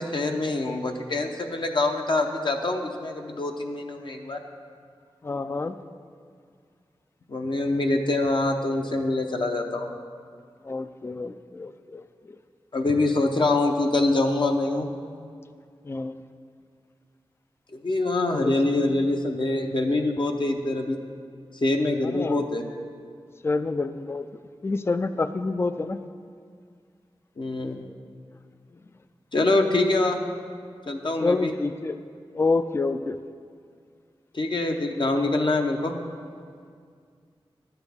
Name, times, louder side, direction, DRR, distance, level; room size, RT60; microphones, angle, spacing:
voice 1, 0.0-4.4 7.3-9.9 12.7-14.9 17.7-21.0 21.6-22.6 27.4-27.8 29.3-30.2 30.9-31.5 34.3-35.9, left 2 dB, 55° left, 3 dB, 0.7 m, -25 dB
voice 2, 5.2-5.7 10.7-12.0 15.9-16.2 18.3-18.5 22.1-22.4 23.4-24.2 24.6-26.0 31.2-32.0 32.3-33.2, left 3 dB, 25° left, 11 dB, 0.3 m, -27 dB
11.0 x 8.0 x 3.5 m, 2.2 s
wide cardioid pair, 60°, 10 cm